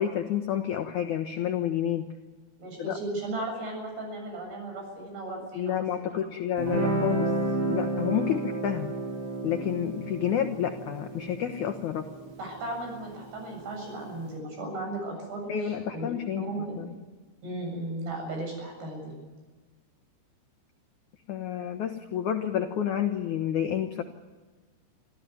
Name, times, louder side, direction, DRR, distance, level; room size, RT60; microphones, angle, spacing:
voice 1, 0.0-2.1 2.8-3.0 5.6-7.3 7.7-8.9 9.4-12.1 15.5-16.9 21.3-24.0, left 10 dB, 80° left, 6 dB, 1.7 m, -29 dB
voice 2, 2.6-6.2 12.4-16.1 16.4-16.9 17.4-19.1, right 2 dB, 65° right, 2 dB, 9.6 m, -36 dB
Guitar, 6.6-13.7, right 2 dB, 85° right, 6.4 m, -32 dB
26.5 x 15.0 x 9.4 m, 1.3 s
omnidirectional pair, 5.2 m